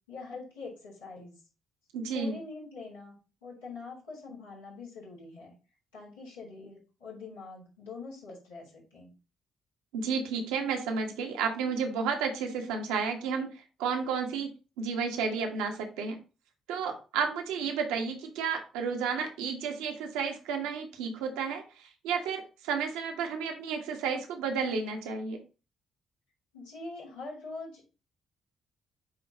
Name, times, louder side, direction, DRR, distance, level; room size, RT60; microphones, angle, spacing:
voice 1, 0.1-1.3 2.1-3.2 3.4-5.5 5.9-9.1 26.5-27.9, left 3 dB, 85° left, -7 dB, 4.1 m, -44 dB
voice 2, 1.9-2.4 9.9-14.5 14.8-16.2 16.7-25.4, right 5 dB, 75° right, 4 dB, 1.3 m, -32 dB
8.7 x 3.1 x 4.1 m, 0.33 s
hypercardioid pair, 45°, 0 cm